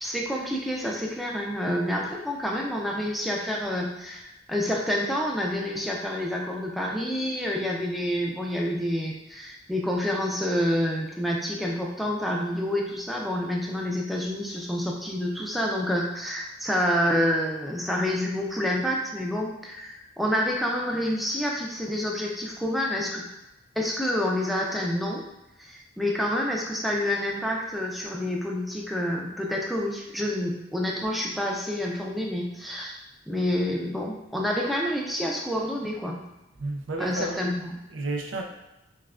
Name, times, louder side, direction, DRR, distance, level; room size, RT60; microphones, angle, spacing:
voice 1, 0.0-23.2 23.8-25.2 25.6-33.0 33.3-36.2 37.0-37.7, left 1 dB, ahead, -2 dB, 0.5 m, -28 dB
voice 2, 36.6-37.5 37.9-38.4, right 2 dB, 80° right, 3 dB, 0.5 m, -31 dB
5.4 x 2.2 x 2.4 m, 0.95 s
head